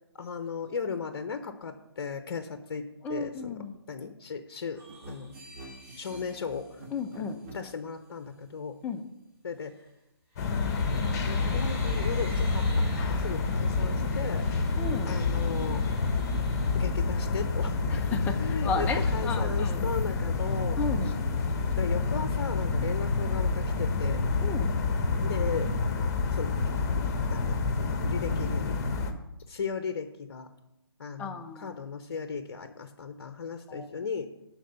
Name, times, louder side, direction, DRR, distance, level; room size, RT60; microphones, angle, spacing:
voice 1, 0.1-3.6 3.9-5.3 6.0-6.9 7.2-8.8 9.4-9.7 11.3-14.5 15.1-15.8 16.7-17.8 18.3-20.8 21.7-24.2 25.2-25.7 25.9-26.0 26.3-26.5 27.0-28.8 29.5-30.5 31.0-34.3, left 5 dB, 55° left, 9 dB, 0.9 m, -36 dB
voice 2, 3.0-3.7 6.9-7.4 8.8-9.0 13.5-13.6 14.8-15.2 17.9-19.8 20.8-21.1 24.4-24.7 31.2-31.7 33.7-33.9, left 4 dB, 10° left, 4 dB, 0.8 m, -34 dB
sound 1, 4.7-7.8 9.6-9.9 10.3-17.6 18.0-18.1 18.4-19.3 19.7-20.2, right 1 dB, 15° right, 3.8 m, -51 dB
sound 2, 4.9-7.6, right 2 dB, 35° right, 2.4 m, -46 dB
sound 3, 10.4-29.1, left 3 dB, 40° left, 1.4 m, -28 dB
12.5 x 4.7 x 6.7 m, 0.90 s
figure-of-eight pair, 145°, 13 cm